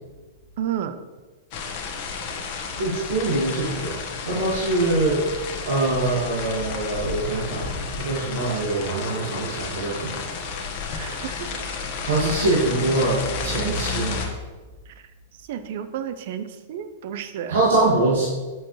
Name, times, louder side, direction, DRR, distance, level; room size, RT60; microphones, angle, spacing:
voice 1, 0.6-1.0 10.9-11.5 14.9-15.0 15.5-17.6, right 9 dB, 60° right, 9 dB, 0.6 m, -31 dB
sound 1, 1.5-14.3, left 5 dB, 45° left, 1.2 m, -31 dB
voice 2, 2.8-3.9 4.3-5.2 5.6-10.2 12.0-14.2 17.5-18.3, right 2 dB, 75° right, -7 dB, 1.9 m, -23 dB
8.1 x 5.9 x 3.2 m, 1.3 s
hypercardioid pair, 110°, 0 cm